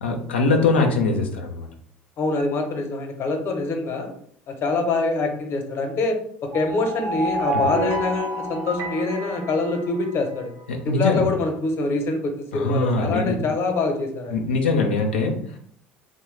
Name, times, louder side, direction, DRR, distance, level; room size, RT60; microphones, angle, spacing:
voice 1, 0.0-1.7 7.5-7.7 10.7-11.3 12.5-13.4 14.3-15.6, left 3 dB, 85° left, 3 dB, 0.4 m, -22 dB
voice 2, 2.2-4.1 4.5-6.2 6.5-10.5 10.9-14.4, left 3 dB, 45° left, 5 dB, 0.7 m, -25 dB
sound 1, 6.5-10.4, right 1 dB, 50° right, 0.6 m, -29 dB
2.9 x 2.1 x 3.1 m, 0.63 s
hypercardioid pair, 70°, 6 cm